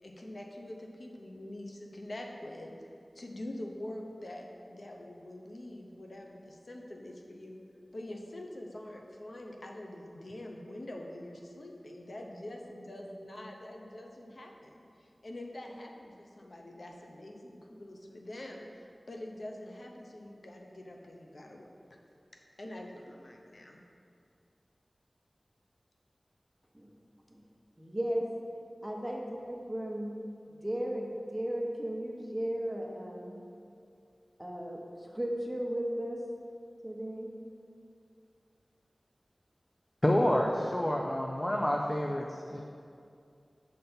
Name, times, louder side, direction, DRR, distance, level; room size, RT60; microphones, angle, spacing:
voice 1, 0.0-7.6 7.9-22.0 22.3-23.8, left 1 dB, 70° left, 1 dB, 0.6 m, -45 dB
voice 2, 27.8-28.3 28.8-30.1 30.6-33.4 34.4-34.8 35.1-36.2 36.8-37.3, right 1 dB, 10° right, -1 dB, 0.8 m, -35 dB
voice 3, 40.0-42.6, left 1 dB, 25° left, 0 dB, 0.4 m, -28 dB
5.6 x 3.3 x 5.6 m, 2.4 s
wide cardioid pair, 55°, 0 cm